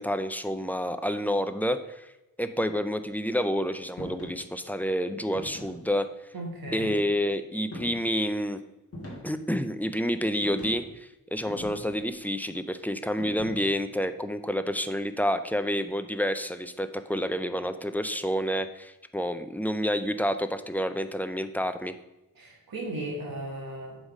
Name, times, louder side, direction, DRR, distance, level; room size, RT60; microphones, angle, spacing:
voice 1, 0.0-2.1 2.4-6.1 6.7-8.6 9.2-22.0, equal, 5° left, 10 dB, 0.3 m, -29 dB
sound 1, 4.0-4.4 5.3-5.9 6.7-7.2 7.7-8.2 8.9-9.5 10.4-10.9 11.5-12.1 13.2-13.8, equal, 40° left, 1.8 m, -42 dB
voice 2, 6.3-6.9 22.4-24.0, right 1 dB, 65° right, -2 dB, 1.8 m, -36 dB
8.0 x 4.1 x 6.2 m, 0.96 s
wide cardioid pair, 140°, 37 cm